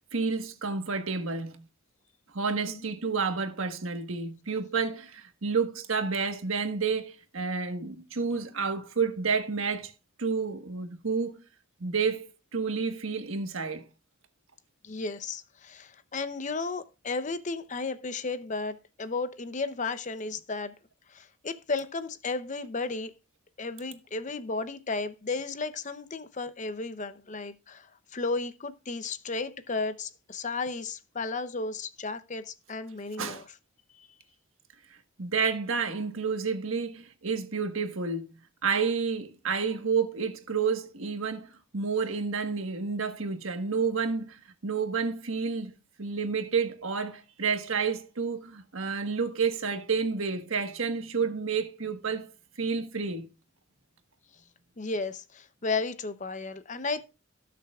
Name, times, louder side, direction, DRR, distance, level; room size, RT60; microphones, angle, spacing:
voice 1, 0.1-1.6 2.3-9.9 10.2-11.4 11.8-12.2 12.5-13.8 33.2-33.4 35.2-38.3 38.6-45.7 46.0-52.3 52.6-53.3, right 5 dB, 80° right, 1.4 m, -30 dB
voice 2, 14.8-20.7 21.1-23.1 23.6-33.4 33.9-34.1 54.8-57.0, left 3 dB, 35° left, 0.7 m, -34 dB
17.5 x 6.7 x 2.4 m
head